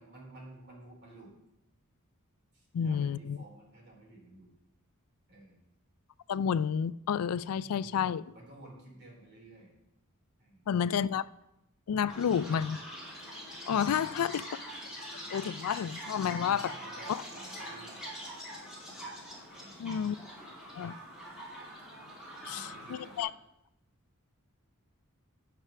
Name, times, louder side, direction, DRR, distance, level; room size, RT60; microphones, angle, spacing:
voice 1, 0.0-1.4 2.5-4.5 5.3-5.6 7.6-9.7 10.4-10.7 13.8-14.1 16.4-18.0 18.3-18.4 19.5-19.9 22.4-23.2, right 1 dB, 50° right, 3.3 m, -52 dB
voice 2, 2.7-3.4 6.3-8.2 10.7-11.2 11.9-12.8 13.7-14.5 15.3-16.7 19.8-20.2 20.8-20.9 22.5-22.7 23.2-23.3, left 8 dB, 85° left, 0.3 m, -30 dB
Chirp tweet, 12.1-23.2, equal, 5° right, 2.9 m, -44 dB
15.0 x 6.0 x 3.3 m
head